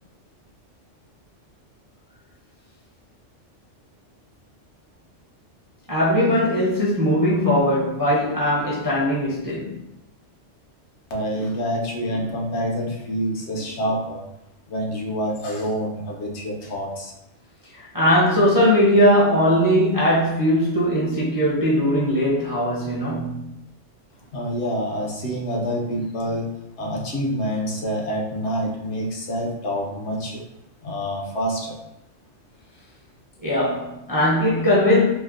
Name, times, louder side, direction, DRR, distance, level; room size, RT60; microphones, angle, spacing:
voice 1, 5.9-9.7 17.8-23.5 33.4-35.0, equal, 25° right, -7 dB, 0.4 m, -19 dB
voice 2, 11.1-14.2 14.7-17.1 24.3-30.4 30.8-31.8, equal, 70° left, -1 dB, 0.9 m, -27 dB
4.1 x 2.0 x 2.4 m, 0.87 s
omnidirectional pair, 1.3 m